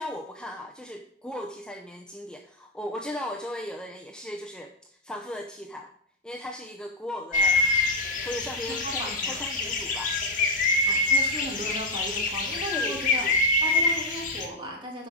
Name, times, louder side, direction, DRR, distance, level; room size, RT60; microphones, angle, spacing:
voice 1, 0.0-5.9 6.2-7.7 8.2-10.1 12.7-13.3, left 1 dB, 5° left, 2 dB, 0.6 m, -37 dB
sound 1, 7.3-14.5, left 2 dB, 45° left, 2.0 m, -25 dB
voice 2, 8.7-9.4 10.9-13.3 13.6-15.1, right 1 dB, 25° right, -1 dB, 2.7 m, -36 dB
11.0 x 5.1 x 6.4 m, 0.64 s
head